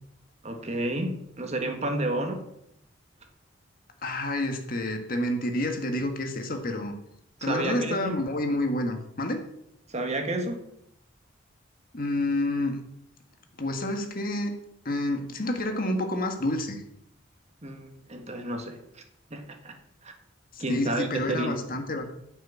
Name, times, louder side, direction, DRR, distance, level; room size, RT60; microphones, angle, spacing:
voice 1, 0.4-2.4 7.4-8.2 9.9-10.7 17.6-19.0 19.3-19.8 20.0-20.1 20.6-21.6, right 1 dB, 35° right, 5 dB, 1.6 m, -31 dB
voice 2, 4.0-6.9 7.4-9.4 11.9-12.8 13.6-14.5 14.9-16.8 20.5-22.1, left 1 dB, 50° left, 5 dB, 1.6 m, -29 dB
10.5 x 6.3 x 8.3 m, 0.79 s
head